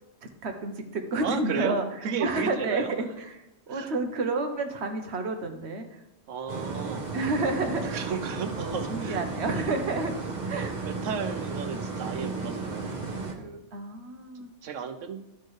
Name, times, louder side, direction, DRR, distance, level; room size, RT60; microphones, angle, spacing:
voice 1, 0.2-1.9 2.2-6.0 7.1-8.1 8.6-10.1 10.5-10.8 13.7-14.5, right 3 dB, 65° right, 5 dB, 1.2 m, -30 dB
voice 2, 1.2-2.9 3.7-3.9 6.3-7.1 7.8-9.2 9.5-9.7 10.6-13.6 14.6-15.2, right 6 dB, 90° right, 9 dB, 1.1 m, -34 dB
sound 1, 6.5-13.3, right 4 dB, 40° right, 1.1 m, -34 dB
12.5 x 4.4 x 3.2 m, 0.92 s
omnidirectional pair, 1.3 m